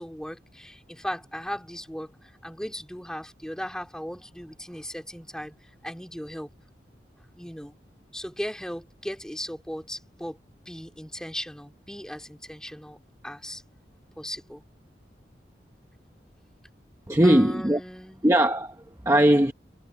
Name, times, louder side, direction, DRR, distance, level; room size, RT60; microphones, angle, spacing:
voice 1, 0.0-6.5 7.3-7.7 8.1-10.4 10.6-13.0 13.2-13.6 14.2-14.6 17.2-18.3, equal, 5° left, 3.0 m, -37 dB
voice 2, 17.1-17.8 18.2-19.5, right 1 dB, 15° right, 0.8 m, -20 dB
head